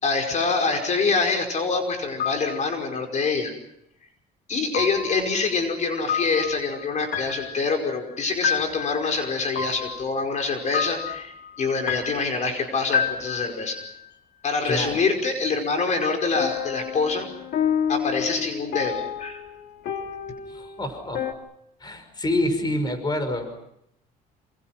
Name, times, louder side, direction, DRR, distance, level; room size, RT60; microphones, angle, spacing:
voice 1, 0.0-3.5 4.5-13.8 14.4-17.3 17.9-19.4, left 4 dB, 45° left, 4 dB, 5.2 m, -25 dB
sound 1, 1.9-2.6 4.7-14.0 16.3-21.3, left 8 dB, 65° left, 2.4 m, -30 dB
voice 2, 14.6-15.0 20.5-21.3 21.8-23.5, left 1 dB, 25° left, 9 dB, 5.6 m, -27 dB
28.5 x 27.0 x 6.0 m, 0.77 s
cardioid pair, 110°, 17 cm